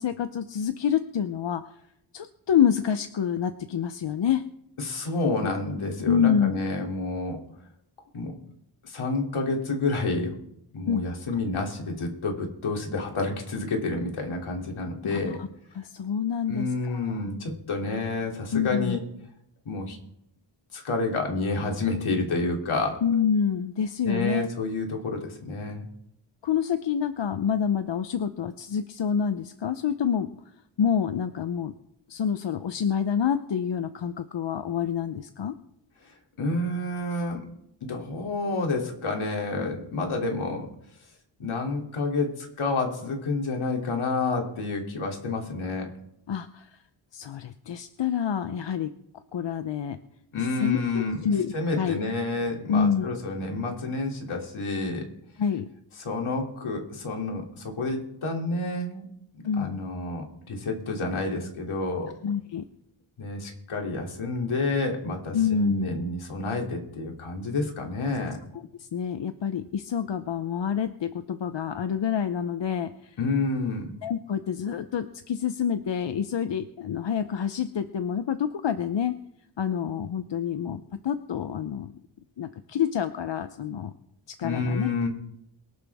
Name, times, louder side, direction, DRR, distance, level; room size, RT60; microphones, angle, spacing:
voice 1, 0.0-1.6 2.1-4.4 5.2-5.3 6.0-6.5 10.9-11.0 15.1-15.5 15.8-17.0 18.5-19.0 23.0-24.5 26.4-30.3 30.8-31.7 32.1-35.5 46.3-46.7 47.1-48.9 49.3-50.0 50.6-52.0 52.7-53.1 55.4-55.7 59.4-59.8 62.2-62.6 65.3-65.9 68.8-73.2 74.0-79.1 79.6-81.9 82.4-83.9 84.4-84.9, left 8 dB, 60° left, 9 dB, 0.8 m, -27 dB
voice 2, 4.8-7.4 8.1-8.3 8.8-10.3 10.7-15.4 16.5-19.0 19.6-20.0 20.7-23.0 24.0-25.9 36.0-37.4 37.8-40.7 41.4-45.9 50.3-55.1 56.0-59.1 59.6-62.1 63.2-68.4 73.2-73.9 84.4-85.1, left 3 dB, 80° left, 1 dB, 3.1 m, -29 dB
23.0 x 11.5 x 3.6 m, 0.78 s
wide cardioid pair, 120°, 48 cm